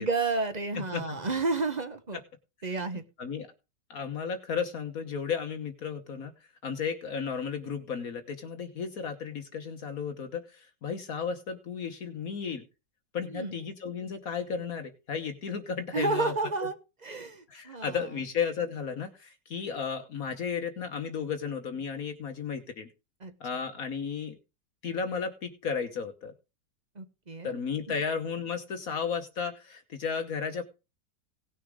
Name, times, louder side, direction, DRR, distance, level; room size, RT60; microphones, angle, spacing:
voice 1, 0.0-2.2 2.6-3.0 13.3-13.5 15.9-16.7 17.0-18.0 23.2-23.3 26.9-27.6 27.9-28.0, right 3 dB, 30° right, 9 dB, 1.1 m, -31 dB
voice 2, 0.7-1.2 3.2-3.5 3.9-6.3 6.6-12.6 13.1-16.3 17.5-22.9 23.4-24.4 24.8-26.3 27.4-30.6, left 6 dB, 55° left, 7 dB, 1.4 m, -34 dB
18.0 x 6.6 x 3.7 m, 0.29 s
omnidirectional pair, 1.9 m